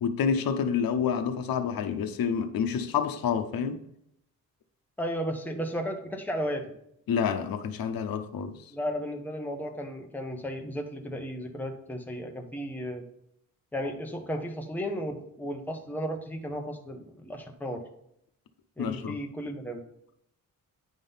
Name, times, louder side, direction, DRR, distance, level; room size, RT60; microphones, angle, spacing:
voice 1, 0.0-3.8 7.1-8.7 18.8-19.2, left 7 dB, 85° left, 0.8 m, -28 dB
voice 2, 5.0-6.6 8.7-13.0 13.7-17.8 18.8-19.8, equal, 5° left, 0.9 m, -34 dB
9.5 x 3.7 x 5.5 m
wide cardioid pair, 160°, 34 cm